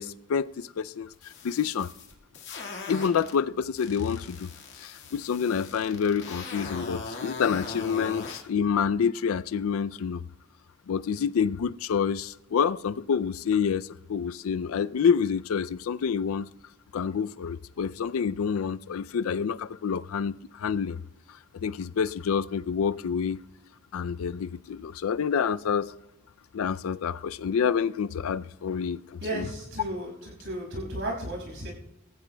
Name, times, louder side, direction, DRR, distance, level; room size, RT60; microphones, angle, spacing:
voice 1, 0.0-1.9 2.9-4.5 4.8-10.2 10.9-16.5 16.9-21.0 21.5-23.4 23.9-25.9 26.5-29.5, left 6 dB, 80° left, 0.4 m, -28 dB
sound 1, 1.1-3.3 3.7-8.4, left 3 dB, 60° left, 1.8 m, -40 dB
voice 2, 29.2-31.7, right 1 dB, 65° right, 5.9 m, -34 dB
23.0 x 15.0 x 2.2 m
head